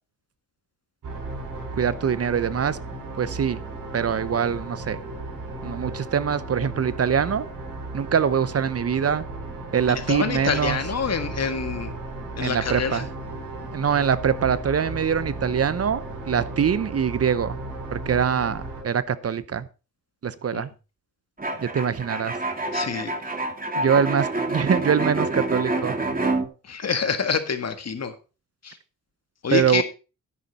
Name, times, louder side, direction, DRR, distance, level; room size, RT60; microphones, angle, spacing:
sound 1, 1.0-18.8, right 2 dB, 75° right, 5.6 m, -35 dB
voice 1, 1.7-2.8 3.2-3.6 3.9-5.0 5.6-7.5 7.9-9.2 9.7-10.8 12.4-13.1 13.7-17.6 17.9-19.7 20.2-20.7 21.6-22.3 23.8-25.9 29.5-29.8, right 7 dB, 50° right, 16 dB, 0.8 m, -23 dB
voice 2, 10.1-11.9 12.4-13.0 20.5-20.6 22.7-23.1 26.7-28.1 28.6-28.8 29.4-29.8, left 6 dB, 55° left, 9 dB, 1.8 m, -26 dB
sound 2, 21.4-26.5, right 2 dB, 25° right, 2.5 m, -27 dB
10.0 x 9.1 x 4.2 m, 0.32 s
cardioid pair, 55°, 31 cm